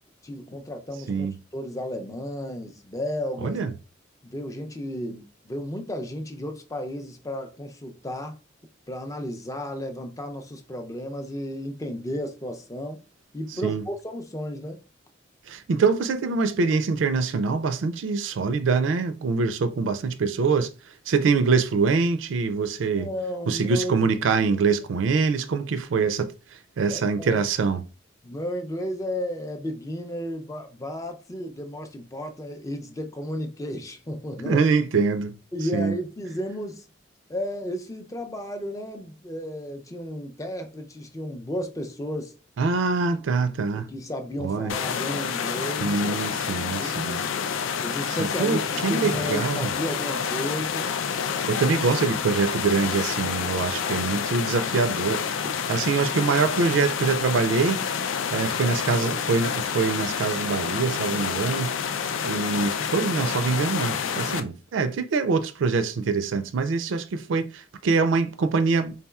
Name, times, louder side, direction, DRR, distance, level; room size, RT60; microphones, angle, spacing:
voice 1, 0.2-3.6 4.2-8.4 8.9-13.0 13.3-14.8 23.0-24.1 26.9-27.5 28.2-34.6 35.5-36.8 37.3-42.3 43.7-46.0 46.5-47.3 47.8-50.9 55.4-55.6, equal, 15° left, 0.5 m, -33 dB
voice 2, 3.4-3.7 13.6-13.8 15.5-20.7 21.1-23.1 23.5-26.3 26.8-27.8 34.5-35.4 35.7-36.0 42.6-43.9 44.4-44.7 45.8-47.2 48.1-49.7 51.5-57.8 58.3-61.7 62.2-69.0, right 4 dB, 80° right, 0.4 m, -24 dB
sound 1, 44.7-64.4, left 7 dB, 85° left, 0.4 m, -28 dB
4.1 x 3.7 x 2.3 m
head